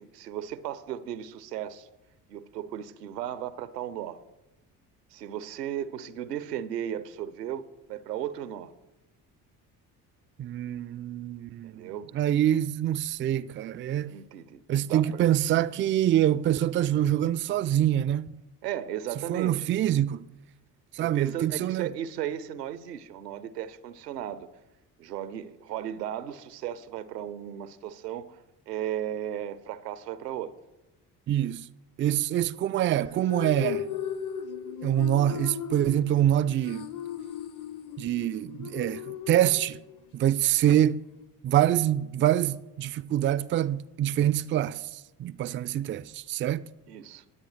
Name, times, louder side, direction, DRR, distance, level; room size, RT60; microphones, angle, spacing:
voice 1, 0.0-1.9 2.3-4.2 5.1-8.7 11.6-12.2 14.1-15.3 18.6-19.7 21.0-24.5 25.0-28.4 28.7-30.5 46.9-47.2, right 10 dB, 85° right, 0.7 m, -35 dB
voice 2, 10.4-14.1 14.7-18.3 19.3-20.3 20.9-21.9 31.3-31.7 32.0-33.9 34.8-36.9 38.0-39.8 40.1-41.0 41.4-46.7, right 11 dB, 25° right, 0.4 m, -25 dB
sound 1, 33.0-40.1, left 9 dB, 40° left, 0.9 m, -37 dB
20.5 x 8.3 x 3.2 m
figure-of-eight pair, 50°, 47 cm